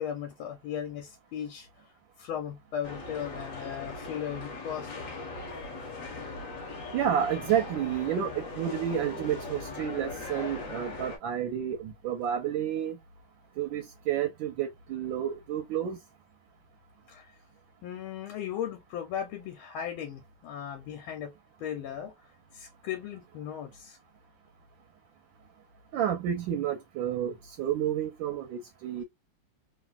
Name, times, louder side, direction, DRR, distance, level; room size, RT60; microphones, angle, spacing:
voice 1, 0.0-1.9 2.2-5.1 17.1-17.4 17.8-21.3 21.6-22.1 22.5-24.0, left 9 dB, 85° left, 1.5 m, -37 dB
sound 1, 2.8-11.2, left 3 dB, 50° left, 1.1 m, -39 dB
voice 2, 6.9-13.0 13.6-16.0 25.9-29.0, right 9 dB, 75° right, 1.2 m, -30 dB
3.3 x 2.5 x 2.3 m
omnidirectional pair, 2.3 m